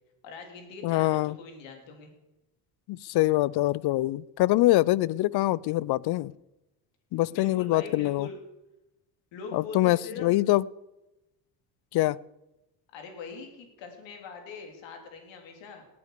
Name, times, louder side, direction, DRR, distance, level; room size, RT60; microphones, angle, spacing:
voice 1, 0.2-2.1 7.3-8.4 9.3-10.4 12.9-15.9, left 4 dB, 70° left, 3.8 m, -42 dB
voice 2, 0.8-1.4 2.9-6.3 7.1-8.3 9.5-10.7 11.9-12.2, left 17 dB, 55° left, 0.6 m, -24 dB
18.5 x 8.7 x 6.8 m
hypercardioid pair, 65°, 46 cm